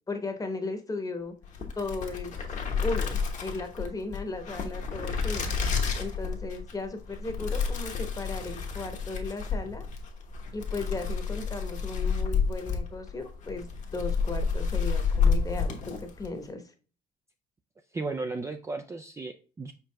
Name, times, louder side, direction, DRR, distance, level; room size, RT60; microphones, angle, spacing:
voice 1, 0.1-1.3 1.8-2.3 2.8-5.5 6.0-9.9 10.5-16.6, left 3 dB, 20° left, 6 dB, 1.0 m, -36 dB
sound 1, 1.4-16.4, left 5 dB, 45° left, 1.0 m, -30 dB
voice 2, 17.9-19.7, right 3 dB, 15° right, 7 dB, 0.3 m, -35 dB
4.9 x 4.6 x 2.2 m, 0.37 s
cardioid pair, 110°, 17 cm